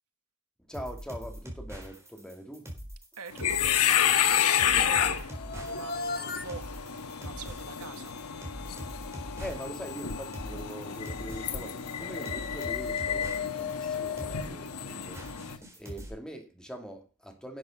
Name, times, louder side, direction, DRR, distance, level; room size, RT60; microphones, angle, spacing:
voice 1, 0.7-2.7 4.8-5.1 9.4-17.6, equal, 5° left, 2.2 m, -43 dB
sound 1, 0.7-16.1, equal, 15° right, 3.9 m, -43 dB
voice 2, 3.2-6.7 7.2-8.1, right 5 dB, 80° right, 1.2 m, -44 dB
sound 2, 3.3-15.6, left 9 dB, 85° left, 1.1 m, -30 dB
sound 3, 5.3-15.5, left 6 dB, 45° left, 1.2 m, -39 dB
11.5 x 7.8 x 5.4 m
head